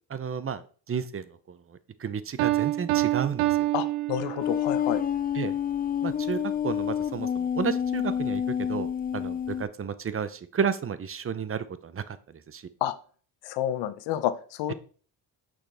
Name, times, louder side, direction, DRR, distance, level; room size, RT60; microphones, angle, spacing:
voice 1, 0.1-1.6 2.0-3.7 5.4-5.5 6.0-12.7, right 7 dB, 30° right, 14 dB, 0.7 m, -32 dB
Piano, 2.4-4.8, right 17 dB, 90° right, 0.6 m, -27 dB
voice 2, 3.7-5.0 12.8-12.9 13.4-14.7, left 12 dB, 90° left, 13 dB, 0.7 m, -29 dB
sound 1, 4.4-9.6, left 9 dB, 25° left, 0.3 m, -28 dB
6.3 x 6.0 x 3.4 m, 0.42 s
cardioid pair, 75°, 42 cm